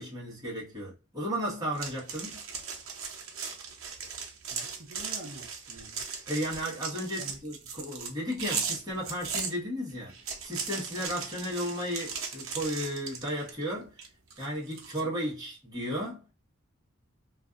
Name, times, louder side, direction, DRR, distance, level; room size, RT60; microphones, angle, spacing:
voice 1, 0.0-2.4 6.3-10.1 10.4-14.0 14.4-16.3, equal, 20° right, 1.1 m, -34 dB
sound 1, 1.7-9.5 10.1-13.6 14.0-15.0, right 5 dB, 90° right, 0.6 m, -37 dB
voice 2, 4.5-6.0 7.2-7.4, right 2 dB, 50° right, 0.6 m, -46 dB
2.5 x 2.4 x 2.3 m
head